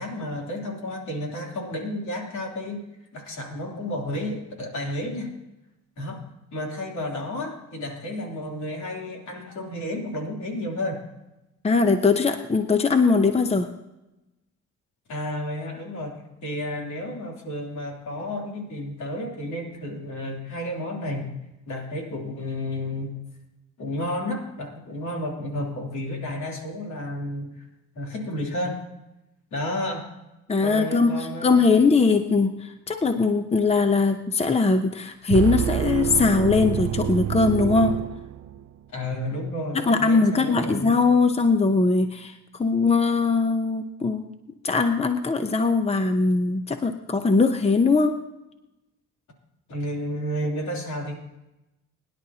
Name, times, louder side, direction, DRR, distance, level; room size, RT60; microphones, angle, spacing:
voice 1, 0.0-2.8 3.1-5.3 6.0-6.2 6.5-11.0 15.1-21.3 21.7-23.1 23.8-27.5 27.9-28.8 29.5-30.1 30.6-31.8 38.9-41.0 49.7-51.1, left 1 dB, 70° left, 0 dB, 3.3 m, -31 dB
voice 2, 11.6-13.7 30.5-38.0 39.7-44.2 44.6-48.2, left 4 dB, 20° left, 7 dB, 0.8 m, -21 dB
sound 1, 35.3-38.8, right 11 dB, 55° right, 0.5 m, -27 dB
21.5 x 10.5 x 2.9 m, 0.97 s
cardioid pair, 90°, 30 cm